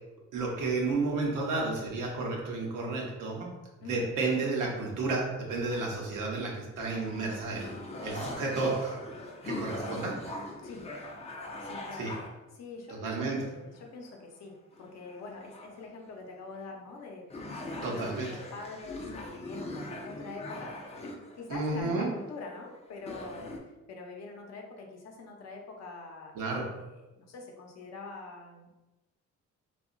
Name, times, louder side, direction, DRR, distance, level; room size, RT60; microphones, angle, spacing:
voice 1, 0.3-3.5 3.8-7.7 8.0-9.0 9.4-10.1 12.0-12.1 13.0-13.4 17.8-18.3 21.5-22.1 26.4-26.7, right 3 dB, 85° right, -2 dB, 0.8 m, -31 dB
sound 1, 5.5-6.3 6.8-12.3 13.1-13.8 14.1-14.2 14.7-15.9 16.5-16.6 17.0-17.1 17.3-21.6 22.5-22.7 22.9-23.6, left 1 dB, 20° left, 0.4 m, -41 dB
voice 2, 10.6-10.9 11.6-12.1 12.5-17.2 17.6-20.7 21.0-26.8 27.2-28.7, left 3 dB, 60° left, 1 dB, 0.6 m, -45 dB
2.8 x 2.3 x 2.5 m, 1.1 s
cardioid pair, 90°, 30 cm